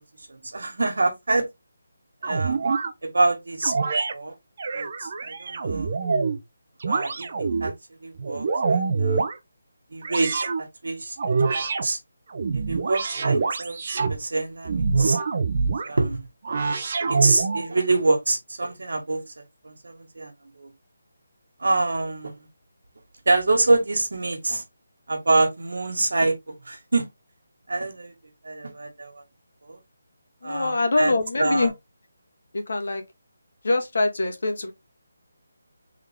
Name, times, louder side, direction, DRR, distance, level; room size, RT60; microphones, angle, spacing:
voice 1, 0.3-1.5 2.2-2.6 3.0-3.7 4.1-4.3 4.7-6.0 6.9-7.3 7.6-7.7 8.0-9.2 9.9-11.1 11.6-12.0 12.5-13.8 14.1-15.2 15.8-16.3 17.1-20.3 20.6-20.7 21.6-22.5 23.2-24.6 25.1-27.1 27.7-28.1 28.4-29.2 29.7-29.8 30.4-31.7, right 2 dB, 80° right, 1.5 m, -26 dB
sound 1, 2.2-2.9 3.6-4.1 4.6-6.4 6.8-7.7 8.2-9.4 10.0-10.6 11.2-11.8 12.3-14.2 14.6-15.9 16.4-17.7, right 4 dB, 35° right, 0.5 m, -25 dB
voice 2, 30.4-31.7 32.5-33.0 33.6-34.7, left 2 dB, 60° left, 1.3 m, -24 dB
3.7 x 3.4 x 3.4 m
hypercardioid pair, 175°, 0 cm